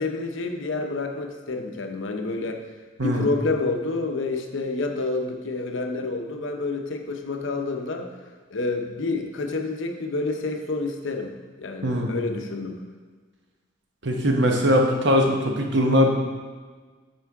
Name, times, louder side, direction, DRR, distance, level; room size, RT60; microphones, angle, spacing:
voice 1, 0.0-2.6 3.0-8.1 8.5-11.3 11.6-12.8, left 3 dB, 70° left, 4 dB, 0.7 m, -28 dB
voice 2, 11.8-12.1 14.0-16.1, equal, 60° right, 2 dB, 1.0 m, -21 dB
9.2 x 4.5 x 3.5 m, 1.4 s
head